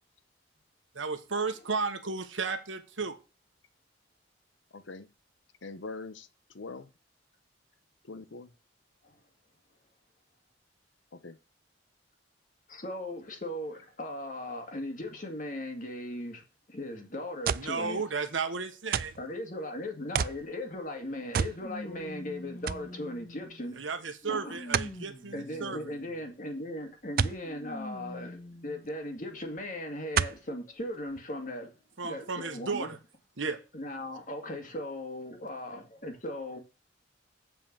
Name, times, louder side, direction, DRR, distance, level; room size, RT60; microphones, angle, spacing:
voice 1, 0.9-3.2 17.5-19.1 23.8-25.9 32.0-33.0 33.4-33.6, right 4 dB, 85° right, 1.3 m, -34 dB
voice 2, 4.7-5.1 5.6-6.3 6.5-6.9 8.0-8.5 11.1-11.4, left 3 dB, 80° left, 0.9 m, -42 dB
voice 3, 12.7-16.4 16.7-18.0 19.2-23.8 24.3-24.6 25.3-31.8 32.0-32.9 33.7-36.6, left 1 dB, 45° left, 2.1 m, -38 dB
sound 1, 17.5-17.8 18.9-19.3 20.1-20.4 21.3-21.6 22.0-22.1 22.7-22.9 24.7-25.0 27.2-27.4 28.9-29.0 30.1-30.5 31.2-31.3, right 7 dB, 50° right, 0.3 m, -29 dB
sound 2, 20.4-20.5 21.6-23.7 24.2-26.3 27.4-28.9 29.6-29.7 30.8-30.9, left 1 dB, 25° left, 1.9 m, -45 dB
7.7 x 5.0 x 7.2 m
head